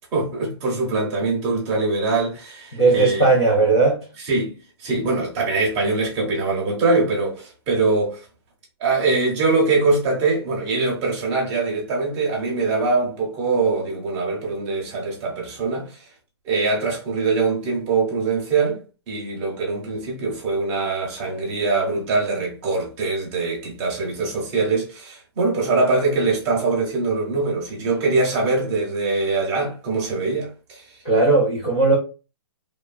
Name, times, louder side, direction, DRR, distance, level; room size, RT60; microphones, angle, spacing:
voice 1, 0.1-3.2 4.2-4.5 4.8-8.3 8.8-16.1 16.4-18.8 19.1-30.8, right 3 dB, 15° right, 0.7 m, -23 dB
voice 2, 2.7-4.0 31.0-32.0, right 3 dB, 15° left, 0.4 m, -17 dB
3.0 x 2.2 x 2.3 m
hypercardioid pair, 175°, 14 cm